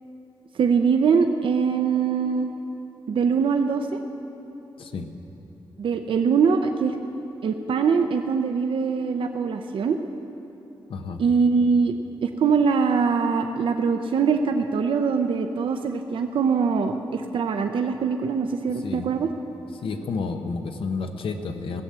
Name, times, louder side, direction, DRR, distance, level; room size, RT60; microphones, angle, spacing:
voice 1, 0.5-2.5 3.1-3.9 5.8-7.0 7.4-10.0 11.2-11.9 12.2-19.3, right 5 dB, 75° right, 6 dB, 0.6 m, -22 dB
voice 2, 19.7-21.8, left 4 dB, 85° left, 5 dB, 0.9 m, -30 dB
17.5 x 7.4 x 7.6 m, 3.0 s
wide cardioid pair, 145°, 9 cm